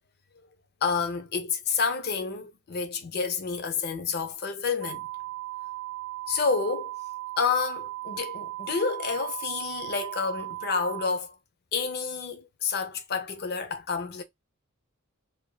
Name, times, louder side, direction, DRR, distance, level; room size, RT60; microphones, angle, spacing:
voice 1, 0.8-5.1 6.3-6.9 7.4-11.4 11.7-14.2, left 5 dB, 45° left, 0.6 m, -29 dB
sound 1, 4.8-11.1, right 18 dB, 60° right, 0.3 m, -37 dB
2.6 x 2.6 x 2.3 m
head